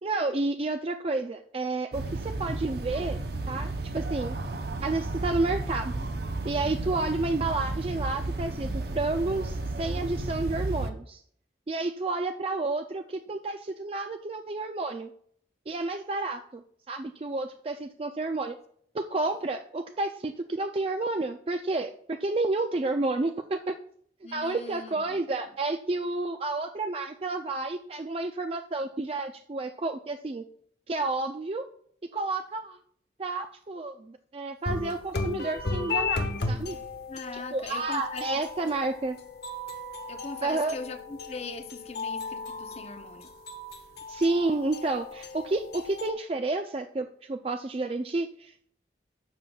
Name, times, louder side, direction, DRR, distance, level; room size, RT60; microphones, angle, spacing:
voice 1, 0.0-3.2 3.5-4.4 4.8-6.0 6.4-11.2 11.7-15.1 15.7-18.6 18.9-23.8 24.3-30.4 30.9-31.6 32.1-32.8 33.2-36.8 37.3-39.2 40.4-40.7 44.1-48.7, right 2 dB, 30° right, 0.4 m, -30 dB
sound 1, 1.9-10.9, right 2 dB, 65° right, 0.8 m, -33 dB
voice 2, 24.2-25.3 37.1-38.4 40.1-43.3, left 3 dB, 35° left, 0.7 m, -41 dB
sound 2, 34.7-46.1, left 3 dB, 65° left, 1.0 m, -35 dB
12.0 x 7.3 x 2.3 m
head